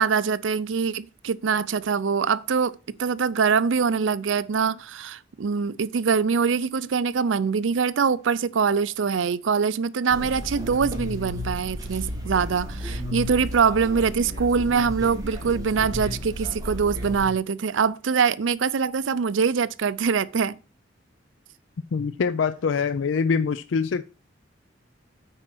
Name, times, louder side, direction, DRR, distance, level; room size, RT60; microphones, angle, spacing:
voice 1, 0.0-20.6, right 6 dB, 80° right, 0.5 m, -24 dB
sound 1, 10.1-17.3, left 1 dB, 20° right, 2.1 m, -33 dB
voice 2, 21.9-24.0, left 5 dB, 80° left, 0.4 m, -24 dB
8.8 x 4.4 x 6.0 m
head